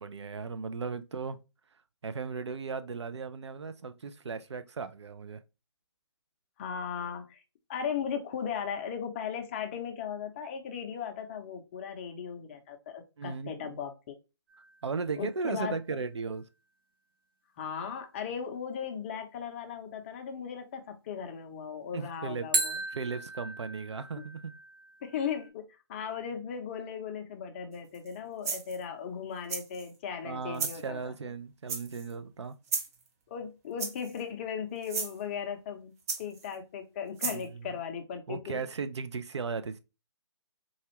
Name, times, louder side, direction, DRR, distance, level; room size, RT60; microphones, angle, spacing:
voice 1, 0.0-1.4 2.0-5.4 13.2-13.8 14.8-16.4 21.9-22.5 22.9-24.5 30.2-32.6 37.3-37.8 38.3-39.8, right 5 dB, 75° right, 0.5 m, -36 dB
voice 2, 6.6-7.4 7.7-14.1 15.2-15.8 17.6-22.8 24.2-24.3 25.0-31.1 33.3-35.9 36.2-38.7, left 7 dB, 25° left, 0.6 m, -37 dB
sound 1, 14.5-15.5 22.5-25.5, right 3 dB, 50° right, 1.0 m, -36 dB
sound 2, 27.9-28.1 28.4-28.8 29.5-29.9 30.5-30.8 31.7-32.1 32.7-33.0 33.8-34.2 34.8-35.1 36.1-36.5 37.2-37.4, right 5 dB, 30° right, 0.7 m, -34 dB
4.1 x 2.4 x 2.9 m
figure-of-eight pair, 145°, 15 cm